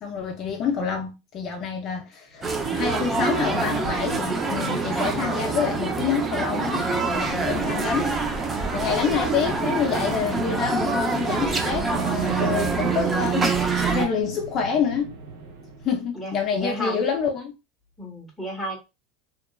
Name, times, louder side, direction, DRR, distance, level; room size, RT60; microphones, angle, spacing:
voice 1, 0.0-6.8 7.1-8.1 8.7-13.6 13.8-15.1 15.8-17.5, left 6 dB, 40° left, 0.5 m, -27 dB
sound 1, 2.3-16.1, right 4 dB, 65° right, 1.0 m, -43 dB
sound 2, 2.4-14.1, right 4 dB, 20° right, 0.5 m, -25 dB
voice 2, 16.1-17.0 18.0-18.8, equal, ahead, 1.1 m, -32 dB
2.9 x 2.3 x 2.2 m
supercardioid pair, 130°, 0 cm